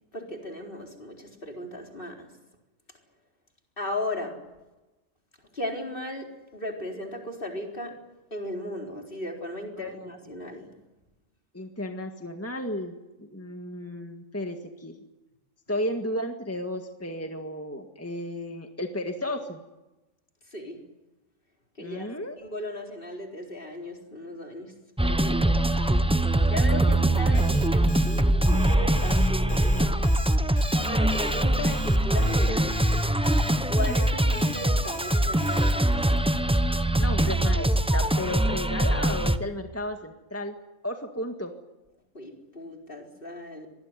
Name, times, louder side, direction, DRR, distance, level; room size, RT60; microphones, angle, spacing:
voice 1, 0.1-2.3 3.8-4.3 5.5-7.9 8.3-10.7 20.5-20.8 21.8-22.1 22.4-24.7 25.0-25.5 26.5-30.2 30.8-32.8 33.7-36.2 42.1-43.7, left 1 dB, 40° left, 2 dB, 4.5 m, -36 dB
voice 2, 9.8-10.1 11.5-15.0 15.7-19.6 21.8-22.4 37.0-40.5 40.8-41.5, left 1 dB, 10° left, 4 dB, 1.8 m, -33 dB
sound 1, 25.0-39.4, right 1 dB, 5° right, 0.7 m, -23 dB
Alarm, 27.3-35.7, left 2 dB, 85° left, 3.5 m, -43 dB
25.5 x 20.0 x 9.9 m, 1.1 s
omnidirectional pair, 1.4 m